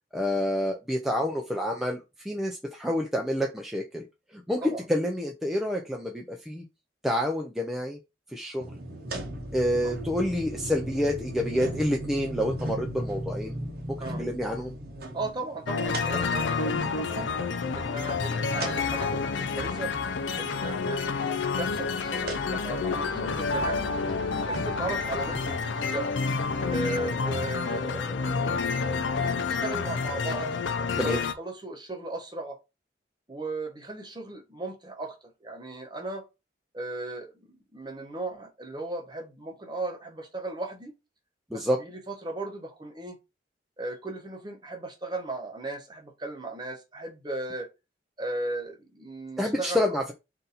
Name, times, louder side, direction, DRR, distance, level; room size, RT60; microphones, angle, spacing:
voice 1, 0.1-4.0 4.3-6.6 7.0-8.0 8.3-8.7 9.5-13.5 14.2-14.7 31.0-31.2 41.5-41.8 49.4-50.1, left 1 dB, ahead, 0.4 m, -28 dB
sound 1, 8.6-25.5, right 1 dB, 55° right, 0.8 m, -39 dB
voice 2, 15.1-17.3 17.7-19.9 20.4-21.0 21.6-23.9 24.5-26.1 26.7-30.5 31.0-32.6 33.3-36.2 36.7-40.9 41.5-43.2 43.8-47.7 48.2-49.8, right 2 dB, 25° right, 0.9 m, -36 dB
sound 2, 15.7-31.3, left 4 dB, 80° left, 0.5 m, -29 dB
3.9 x 2.6 x 4.1 m
head